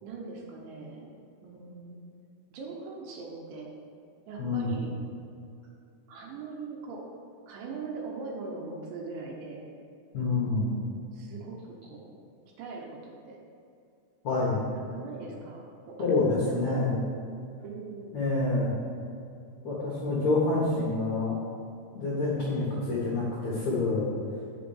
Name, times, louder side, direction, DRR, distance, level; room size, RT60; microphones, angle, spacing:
voice 1, 0.0-1.1 1.4-2.0 2.5-3.7 4.3-4.9 6.1-7.1 7.5-9.7 10.5-10.8 11.1-12.1 12.6-13.4 14.7-16.9 17.6-18.2, right 4 dB, 75° right, -1 dB, 3.2 m, -41 dB
voice 2, 4.4-4.7 10.1-10.7 14.2-14.7 16.0-17.0 18.1-18.7 19.6-21.4 21.9-24.1, left 3 dB, 70° left, -6 dB, 1.7 m, -27 dB
7.0 x 5.7 x 7.3 m, 2.5 s
omnidirectional pair, 5.7 m